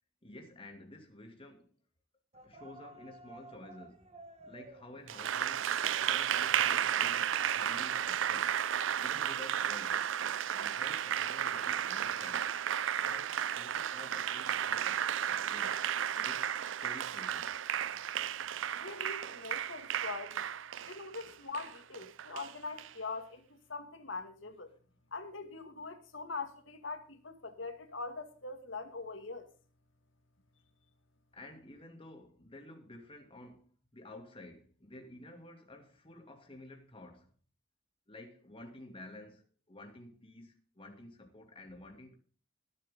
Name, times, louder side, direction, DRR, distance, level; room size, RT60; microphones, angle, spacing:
voice 1, 0.2-1.7 2.4-4.1 4.4-5.8 6.1-8.6 9.0-10.1 10.5-12.6 13.0-16.5 16.8-17.6 31.3-37.3 38.1-42.2, left 1 dB, 30° left, 2.7 m, -52 dB
sound 1, 2.3-8.2, right 2 dB, 35° right, 1.8 m, -56 dB
Applause, 5.1-22.9, right 9 dB, 75° right, 0.5 m, -33 dB
voice 2, 18.7-20.5 20.9-24.7 25.1-29.5, left 3 dB, 75° left, 2.3 m, -42 dB
21.0 x 8.1 x 3.8 m
head